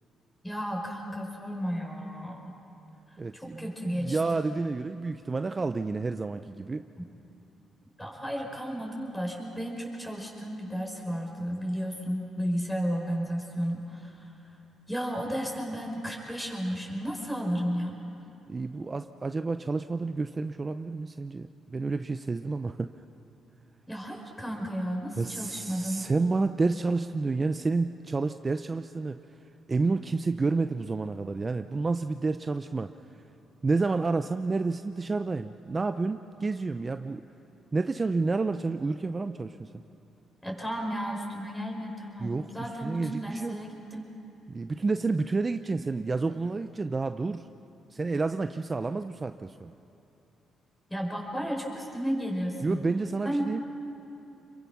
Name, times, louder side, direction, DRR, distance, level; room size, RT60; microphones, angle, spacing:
voice 1, 0.4-2.5 3.1-4.5 8.0-14.3 14.9-18.0 23.9-26.0 40.4-44.1 50.9-52.8 53.2-53.5, equal, 10° left, 0 dB, 5.4 m, -33 dB
voice 2, 3.2-6.8 18.5-22.9 25.2-29.2 29.7-32.9 33.6-37.2 37.7-39.7 42.2-43.6 44.5-47.5 47.9-49.7 52.6-53.6, right 3 dB, 30° right, 9 dB, 0.6 m, -30 dB
27.5 x 22.5 x 6.1 m, 2.9 s
cardioid pair, 90°, 0 cm